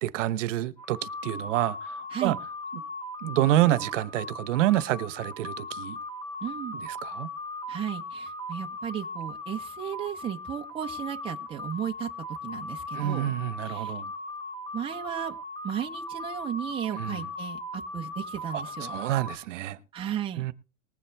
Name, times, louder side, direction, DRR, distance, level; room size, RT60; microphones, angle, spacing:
voice 1, 0.0-2.4 3.2-6.0 6.9-7.3 12.9-14.1 16.9-17.2 18.5-19.8 20.4-20.5, right 14 dB, 65° right, 1.1 m, -28 dB
sound 1, 0.8-19.4, left 2 dB, 15° left, 1.3 m, -38 dB
voice 2, 6.4-6.8 7.7-12.1 12.4-13.3 13.7-13.9 14.7-15.3 15.6-18.9 19.9-20.5, right 10 dB, 15° right, 0.9 m, -34 dB
20.0 x 7.4 x 3.4 m
supercardioid pair, 155°, 39 cm